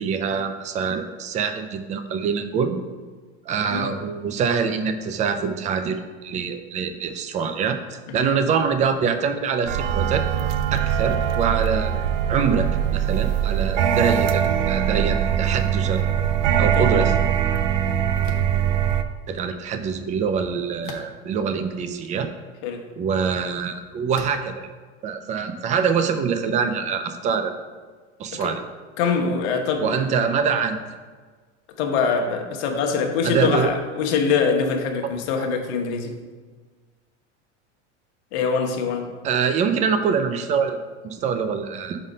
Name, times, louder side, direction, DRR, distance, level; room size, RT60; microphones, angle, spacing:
voice 1, 0.0-2.8 3.5-10.2 10.7-11.9 12.3-16.0 16.6-17.1 19.3-22.3 23.0-24.7 25.0-27.5 28.2-28.6 29.8-30.8 33.2-33.7 39.2-40.8 41.0-42.0, right 6 dB, 20° right, 0.3 m, -24 dB
sound 1, 9.7-19.0, right 9 dB, 80° right, 0.5 m, -22 dB
voice 2, 16.5-17.1 22.6-22.9 28.3-28.5 29.0-30.0 31.8-36.3 38.3-39.2, left 5 dB, 70° left, 1.0 m, -24 dB
sound 2, 18.2-18.6 20.8-21.4 22.1-22.2 24.1-24.5, left 5 dB, 35° left, 0.7 m, -40 dB
5.0 x 4.1 x 5.2 m
supercardioid pair, 125°, 36 cm